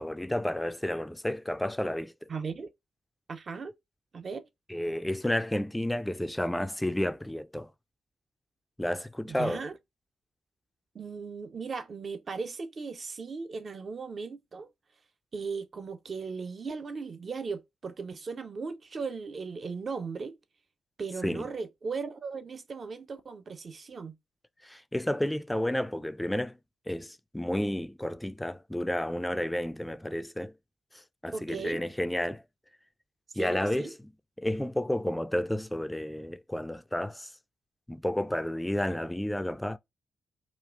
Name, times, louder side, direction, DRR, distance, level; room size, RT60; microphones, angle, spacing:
voice 1, 0.0-2.3 4.7-7.7 8.8-9.6 21.2-21.5 24.6-26.6 26.9-30.5 31.2-32.4 33.4-34.1 34.4-37.3 37.9-39.8, left 1 dB, 10° left, 0.4 m, -31 dB
voice 2, 2.3-2.7 3.3-3.7 4.1-4.5 9.3-9.7 10.9-14.7 15.3-20.4 21.0-24.1 31.3-31.8 33.4-33.9, right 4 dB, 50° right, 0.5 m, -37 dB
5.0 x 2.3 x 2.4 m
hypercardioid pair, 40°, 0 cm